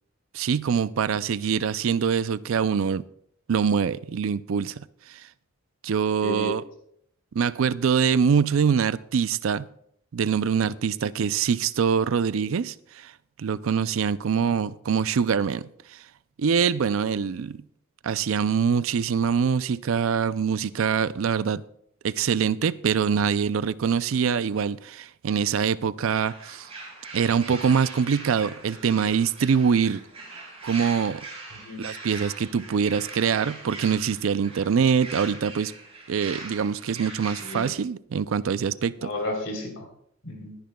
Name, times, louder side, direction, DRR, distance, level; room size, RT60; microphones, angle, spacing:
voice 1, 0.3-3.0 3.5-5.2 5.8-6.6 7.3-9.7 10.1-13.1 13.4-15.7 16.4-17.6 18.0-21.6 22.0-26.7 27.1-30.0 30.6-31.2 31.8-35.7 36.1-39.1, right 6 dB, 75° right, 0.4 m, -24 dB
voice 2, 6.2-6.5 14.4-14.6 31.6-31.9 37.4-37.7 39.0-39.9 40.2-40.6, left 2 dB, 70° left, 3.5 m, -33 dB
sound 1, 26.1-37.7, right 3 dB, 30° right, 6.1 m, -41 dB
22.0 x 10.5 x 2.3 m
head